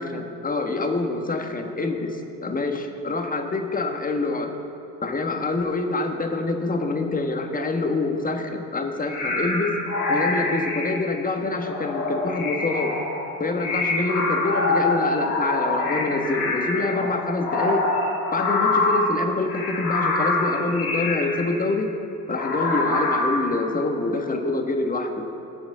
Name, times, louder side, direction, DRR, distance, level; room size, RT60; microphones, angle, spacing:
voice 1, 0.0-4.5 5.0-9.8 10.1-12.9 13.4-17.8 18.3-21.9 22.3-25.2, left 3 dB, 20° left, 4 dB, 1.4 m, -26 dB
sound 1, 9.0-11.1 11.6-19.1 19.5-21.5 22.3-23.5, left 2 dB, 85° left, 2.0 m, -25 dB
19.0 x 7.0 x 4.0 m, 2.9 s
hypercardioid pair, 55°, 45 cm